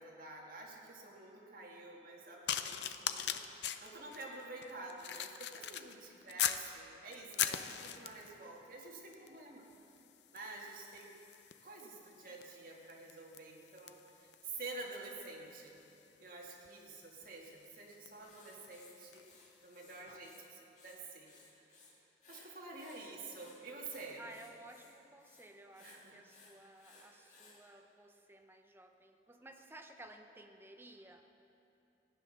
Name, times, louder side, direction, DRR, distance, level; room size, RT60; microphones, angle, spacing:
voice 1, 0.0-9.7 10.3-11.2 11.6-15.8 16.2-19.3 19.6-21.3 21.6-21.7 22.3-24.3 25.8-26.2, right 3 dB, 50° right, -1 dB, 2.0 m, -49 dB
sound 1, 2.5-6.7 7.1-8.4 9.1-9.4 9.7-19.3 20.0-20.2, left 10 dB, 75° left, 0.6 m, -42 dB
voice 2, 5.9-6.3 16.7-17.1 18.2-18.7 24.2-31.2, right 1 dB, 15° right, 5 dB, 0.7 m, -56 dB
Writing, 18.2-20.4 20.7-21.9 22.2-27.6, left 3 dB, 45° left, 2.2 m, -62 dB
14.5 x 10.0 x 6.4 m, 2.9 s
head